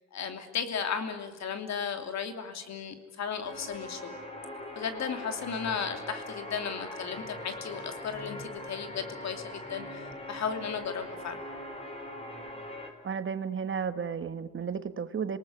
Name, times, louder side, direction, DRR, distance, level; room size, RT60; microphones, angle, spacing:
voice 1, 0.1-4.1 4.7-11.4, left 6 dB, 65° left, 7 dB, 3.0 m, -35 dB
sound 1, 3.4-12.9, left 1 dB, 20° left, 5.0 m, -42 dB
voice 2, 13.0-15.4, right 6 dB, 40° right, 11 dB, 1.4 m, -33 dB
27.0 x 18.5 x 9.6 m, 1.3 s
cardioid pair, 90°, 30 cm